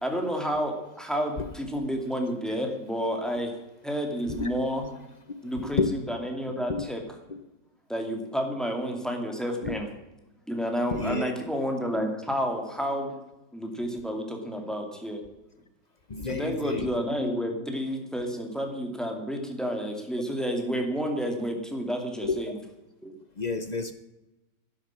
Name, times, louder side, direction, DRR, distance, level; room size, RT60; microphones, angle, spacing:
voice 1, 0.0-3.5 3.8-4.9 5.4-7.0 7.9-9.9 10.5-13.1 13.5-15.2 16.3-22.6 23.0-23.1, equal, ahead, 3 dB, 2.3 m, -30 dB
voice 2, 5.6-5.9 6.7-6.8 9.6-9.8 10.9-11.4 16.1-16.9 22.2-22.4 23.4-23.9, left 4 dB, 50° left, 10 dB, 0.5 m, -29 dB
12.0 x 10.5 x 7.4 m, 1.0 s
omnidirectional pair, 1.9 m